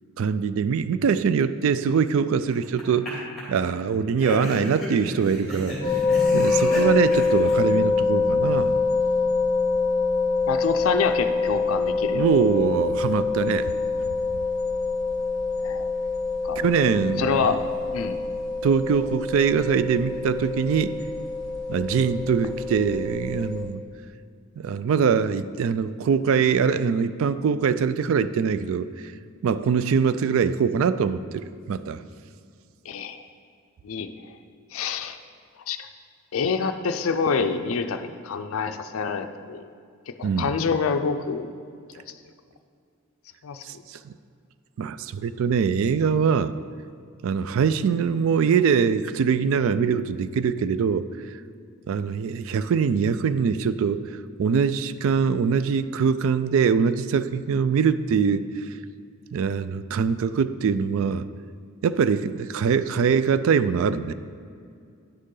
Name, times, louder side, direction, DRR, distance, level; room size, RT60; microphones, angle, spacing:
voice 1, 0.2-3.2 3.5-6.0 6.3-8.8 12.1-13.7 16.6-17.4 18.6-20.9 21.7-23.8 24.6-28.9 29.4-32.0 40.2-40.5 43.6-44.1 44.8-46.5 47.2-51.1 51.9-58.6 59.3-61.2 61.8-64.1, right 6 dB, 65° right, 14 dB, 0.3 m, -23 dB
sound 1, 2.5-3.1 3.4-3.5 4.2-7.6, equal, ahead, 2.3 m, -33 dB
sound 2, 5.8-23.6, left 4 dB, 20° left, 1.8 m, -25 dB
voice 2, 10.5-12.3 15.6-15.8 16.4-16.6 17.2-17.6 17.9-18.4 32.9-33.2 33.8-34.3 34.7-35.2 35.7-35.8 36.3-39.6 40.1-41.5 41.9-42.0 43.4-43.8, left 5 dB, 65° left, 7 dB, 0.4 m, -27 dB
9.7 x 6.5 x 3.8 m, 2.3 s
head